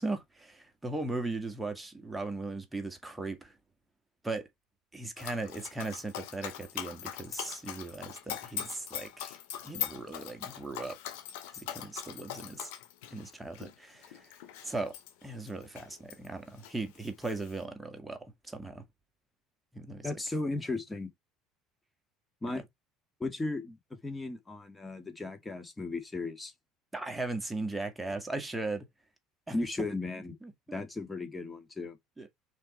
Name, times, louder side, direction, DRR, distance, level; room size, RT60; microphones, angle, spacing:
voice 1, 0.0-3.6 4.2-4.5 4.9-9.4 9.6-11.0 11.5-12.7 13.1-14.4 14.6-14.9 15.2-18.8 19.7-20.1 26.9-28.9 29.5-29.6 30.4-30.8 32.2-32.3, right 2 dB, 10° right, 1.9 m, -38 dB
Dog, 5.2-16.3 16.6-17.6, left 11 dB, 80° left, 2.1 m, -41 dB
voice 2, 20.0-21.1 22.4-22.6 23.2-23.8 24.0-26.5 29.5-30.4 30.7-32.0, left 2 dB, 15° left, 1.8 m, -35 dB
5.8 x 4.5 x 4.3 m
hypercardioid pair, 80°, 0 cm